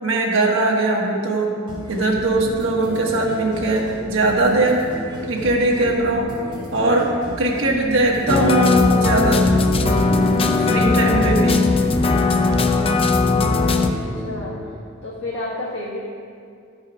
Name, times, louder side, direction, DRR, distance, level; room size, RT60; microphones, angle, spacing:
voice 1, 0.0-1.5 1.9-4.8 5.3-6.3 6.7-7.1 7.4-9.4 10.6-11.6, right 2 dB, 65° right, -1 dB, 1.4 m, -20 dB
sound 1, 1.7-14.6, equal, 25° right, 2.4 m, -34 dB
sound 2, 8.3-13.9, left 3 dB, 30° left, 0.5 m, -18 dB
voice 2, 13.9-14.6 15.0-16.0, left 2 dB, 75° left, -6 dB, 1.4 m, -30 dB
12.5 x 5.6 x 4.9 m, 2.3 s
head